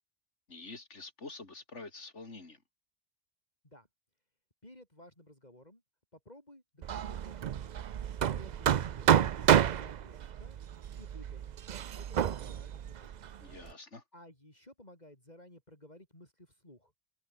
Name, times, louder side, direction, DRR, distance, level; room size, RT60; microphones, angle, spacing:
voice 1, 0.5-2.6 13.4-14.0, left 3 dB, 90° left, 3.6 m, -47 dB
voice 2, 4.6-5.8 6.1-7.9 8.3-9.4 9.7-10.6 11.0-11.5 12.0-13.3 14.1-16.9, left 1 dB, 35° left, 5.8 m, -56 dB
Hammer, 6.8-13.7, right 9 dB, 50° right, 0.5 m, -30 dB
omnidirectional pair, 1.2 m